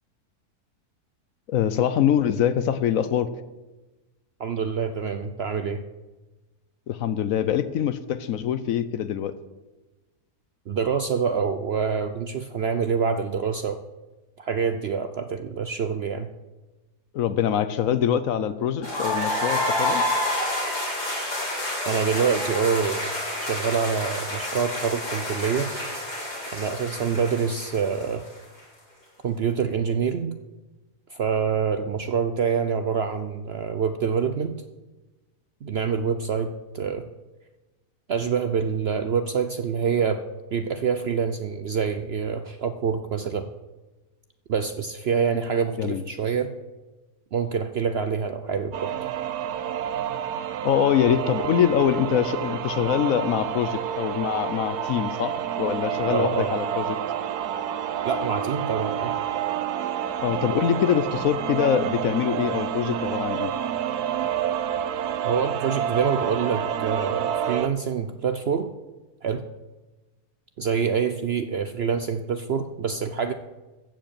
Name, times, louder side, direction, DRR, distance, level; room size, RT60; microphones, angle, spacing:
voice 1, 1.5-3.3 6.9-9.4 17.1-20.0 45.8-46.0 50.6-56.9 60.2-63.5, left 9 dB, 70° left, 14 dB, 1.0 m, -24 dB
voice 2, 4.4-5.8 10.7-13.8 14.4-16.3 21.9-23.1 23.4-25.7 26.5-28.2 29.2-30.4 31.1-34.6 35.6-37.1 38.1-40.2 40.5-43.5 44.5-46.5 47.3-48.9 56.1-56.5 58.0-59.1 65.2-68.7 69.2-69.4 70.6-73.3, right 6 dB, 60° right, 9 dB, 0.7 m, -26 dB
sound 1, 18.8-28.6, left 1 dB, 90° left, 5.9 m, -29 dB
sound 2, 48.7-67.7, right 9 dB, 80° right, 1.3 m, -29 dB
14.5 x 5.2 x 8.7 m, 1.1 s
omnidirectional pair, 1.7 m